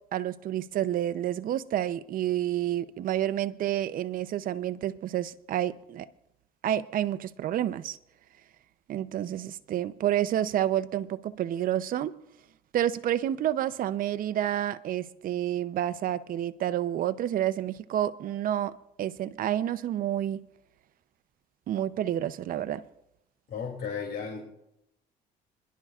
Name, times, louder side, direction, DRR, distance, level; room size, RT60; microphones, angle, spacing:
voice 1, 0.1-6.1 6.6-8.0 8.9-12.2 12.7-18.7 19.0-20.4 21.7-22.8, right 11 dB, 55° right, 0.6 m, -29 dB
voice 2, 23.5-24.4, left 6 dB, 65° left, 2.7 m, -34 dB
26.5 x 11.0 x 2.4 m
cardioid pair, 110°, 17 cm